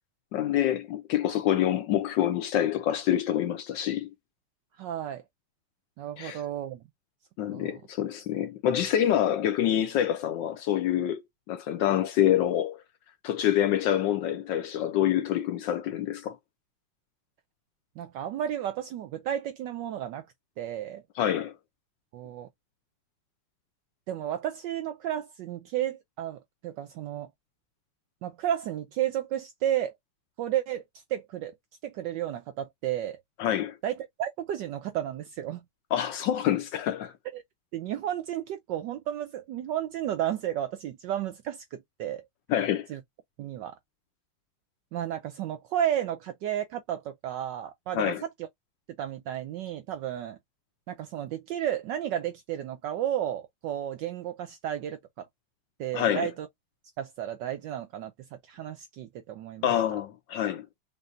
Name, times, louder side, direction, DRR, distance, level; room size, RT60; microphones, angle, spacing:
voice 1, 0.3-4.1 6.2-6.4 7.4-11.2 11.5-12.8 13.2-16.4 21.2-21.5 33.4-33.8 35.9-37.1 42.5-42.9 47.9-48.2 55.9-56.3 59.6-60.6, left 11 dB, 75° left, 1.1 m, -26 dB
voice 2, 4.8-5.2 6.0-6.8 7.5-7.8 18.0-20.3 20.6-21.0 22.1-22.5 24.1-27.3 28.2-29.9 30.4-30.8 31.1-31.5 31.8-33.2 33.8-35.6 37.3-37.4 37.7-42.2 42.9-43.0 43.4-43.8 44.9-48.2 49.0-50.4 50.9-55.3 55.8-56.5 57.0-58.1 58.4-59.7, right 11 dB, 75° right, 1.0 m, -32 dB
5.3 x 2.6 x 2.5 m
omnidirectional pair, 2.4 m